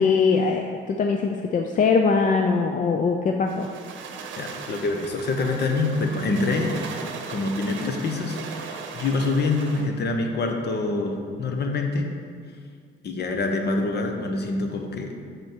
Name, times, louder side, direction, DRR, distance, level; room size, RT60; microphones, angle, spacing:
voice 1, 0.0-3.7, left 5 dB, 40° left, 4 dB, 0.4 m, -21 dB
sound 1, 3.5-9.9, right 5 dB, 75° right, 0.8 m, -38 dB
voice 2, 4.4-6.7 7.3-12.1 13.0-15.1, left 3 dB, 55° left, 3 dB, 1.0 m, -26 dB
6.2 x 5.3 x 4.5 m, 2.1 s
cardioid pair, 90°, 20 cm